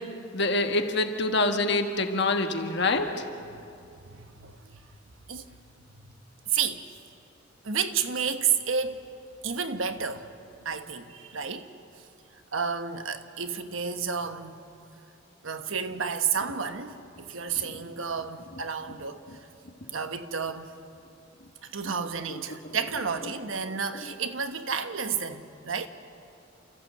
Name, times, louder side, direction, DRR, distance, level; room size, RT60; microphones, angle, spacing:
voice 1, 0.3-3.2 22.5-22.6, left 2 dB, 60° left, 1.6 m, -25 dB
voice 2, 4.0-4.8 5.3-5.5 6.5-6.8 7.6-9.0 9.4-10.3 10.6-11.7 12.5-14.6 15.4-19.2 19.9-20.7 21.6-25.9, right 6 dB, 80° right, 1.2 m, -31 dB
29.0 x 14.5 x 8.0 m
head